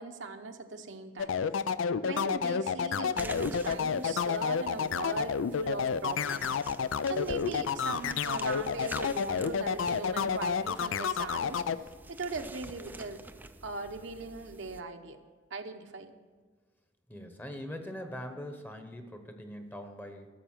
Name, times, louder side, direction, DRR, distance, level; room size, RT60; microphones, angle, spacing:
voice 1, 0.0-1.4 2.0-6.6 7.1-11.6 12.1-13.2 13.6-15.2 15.5-16.1, right 3 dB, 65° right, 5 dB, 0.9 m, -39 dB
sound 1, 1.2-11.8, left 6 dB, 80° left, 0.4 m, -30 dB
sound 2, 3.1-14.8, right 2 dB, 10° right, 0.4 m, -48 dB
voice 2, 17.1-20.3, equal, 10° left, 6 dB, 1.0 m, -42 dB
13.5 x 6.8 x 7.3 m, 1.4 s
head